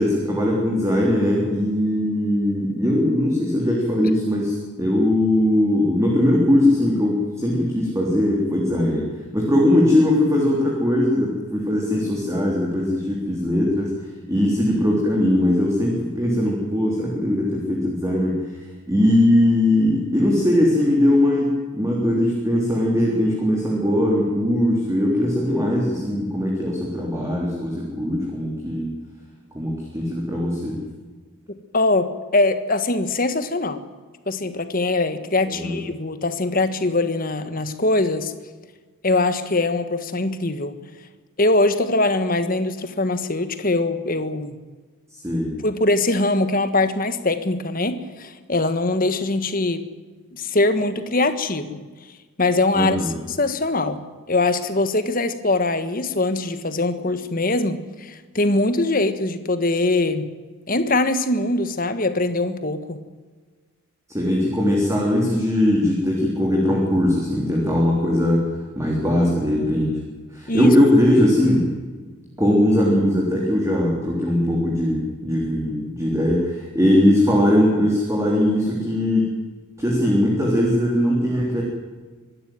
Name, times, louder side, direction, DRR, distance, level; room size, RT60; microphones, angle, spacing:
voice 1, 0.0-9.1 9.3-13.9 14.3-18.6 18.9-28.9 29.5-30.8 35.4-35.8 45.1-45.6 52.7-53.1 64.1-68.4 68.8-70.0 70.3-71.7 72.4-79.3 79.8-81.6, left 1 dB, 15° right, -2 dB, 3.5 m, -20 dB
voice 2, 31.5-33.8 34.3-38.3 39.0-40.8 41.4-44.6 45.6-49.8 50.3-51.8 52.4-53.0 53.3-54.0 54.3-60.3 60.7-63.0 70.5-70.8, left 2 dB, 40° left, 10 dB, 1.5 m, -22 dB
24.5 x 12.5 x 9.1 m, 1.4 s
head